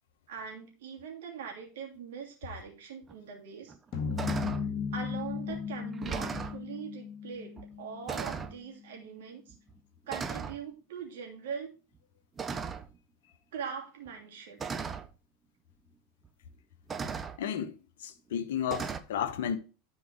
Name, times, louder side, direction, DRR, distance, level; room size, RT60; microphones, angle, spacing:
voice 1, 0.3-3.7 4.9-9.5 10.1-11.7 13.5-14.6, right 7 dB, 65° right, 2.8 m, -42 dB
sound 1, 3.1-3.2 3.7-3.9 4.2-4.7 5.5-5.6 5.9-6.6 7.6-7.7 8.1-8.6 9.5-9.7 10.1-10.6 12.4-13.0 14.1-14.2 14.6-15.1 16.2-16.3 16.9-17.4 18.7-19.0, right 5 dB, 20° right, 0.8 m, -36 dB
sound 2, 3.9-8.3, left 6 dB, 45° left, 2.0 m, -36 dB
voice 2, 17.4-17.7 18.0-19.6, left 9 dB, 65° left, 1.1 m, -32 dB
10.5 x 4.8 x 4.8 m
figure-of-eight pair, 85°, 0 cm